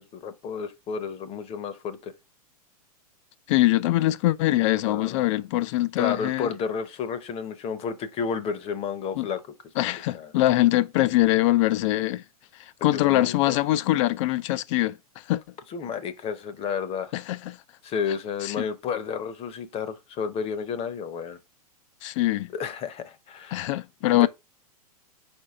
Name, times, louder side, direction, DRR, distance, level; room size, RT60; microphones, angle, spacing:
voice 1, 0.1-2.1 4.8-5.3 6.0-9.4 9.8-10.3 12.9-13.6 15.7-17.1 17.8-21.4 22.5-23.7 24.1-24.3, left 6 dB, 30° left, 0.8 m, -31 dB
voice 2, 3.5-6.5 9.2-9.3 9.8-12.2 12.8-15.0 15.3-15.4 17.1-17.6 18.4-18.6 22.0-22.5 23.5-24.3, left 16 dB, 50° left, 0.5 m, -23 dB
4.5 x 4.5 x 4.8 m
hypercardioid pair, 110°, 20 cm